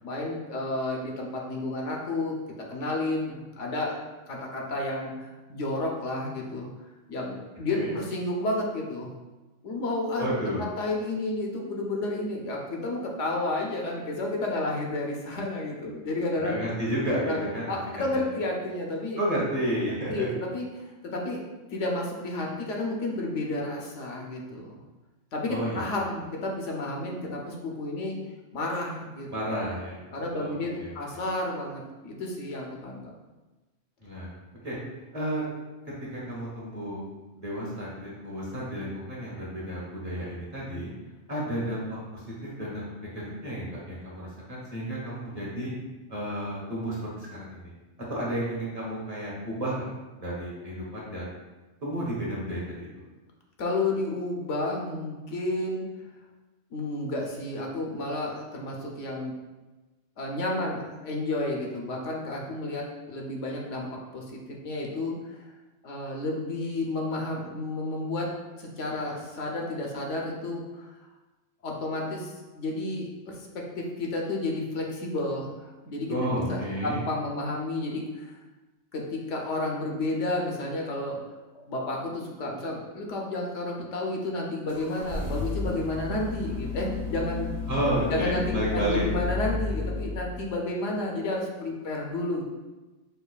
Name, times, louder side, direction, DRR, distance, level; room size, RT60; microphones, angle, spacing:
voice 1, 0.0-2.4 2.7-3.9 4.3-6.7 7.1-9.1 9.6-10.3 10.8-16.6 17.3-17.4 17.7-19.2 20.1-21.4 21.7-24.8 25.3-28.2 28.5-29.3 30.1-33.0 53.6-55.9 56.7-59.3 60.2-63.9 64.1-65.4 65.8-68.3 68.6-71.0 71.6-76.2 76.5-78.4 78.9-81.2 81.7-87.6 88.1-92.4, left 2 dB, 75° left, -1 dB, 1.0 m, -31 dB
voice 2, 10.2-10.7 16.4-17.7 18.1-18.2 19.2-20.3 25.5-25.9 29.3-31.2 34.0-34.3 34.6-34.8 35.1-35.4 36.1-37.0 37.3-40.9 41.3-45.7 46.1-47.7 48.1-49.8 50.2-51.3 51.8-52.9 76.1-77.0 87.7-89.1, equal, 35° right, -6 dB, 0.8 m, -31 dB
sound 1, 84.7-90.6, left 4 dB, 45° left, 0.6 m, -33 dB
5.3 x 2.3 x 2.3 m, 1.1 s
omnidirectional pair, 1.3 m